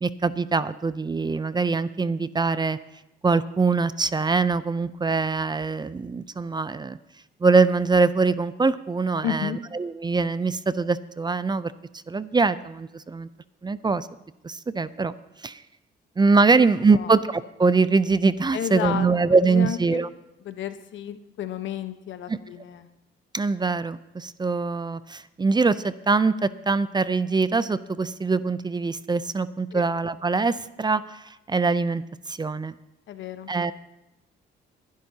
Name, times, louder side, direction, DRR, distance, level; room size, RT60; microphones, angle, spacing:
voice 1, 0.0-2.8 3.2-7.0 7.4-11.7 12.1-13.3 13.6-14.1 14.4-15.1 15.4-15.6 16.2-20.1 22.3-22.4 23.3-32.7 33.5-33.7, right 4 dB, 20° right, 15 dB, 0.5 m, -23 dB
voice 2, 9.2-9.6 16.5-17.1 18.5-19.1 19.4-20.0 20.4-22.9 29.7-29.8 33.1-33.5, left 9 dB, 70° left, 10 dB, 1.0 m, -32 dB
22.5 x 11.5 x 2.8 m, 0.93 s
cardioid pair, 90°, 20 cm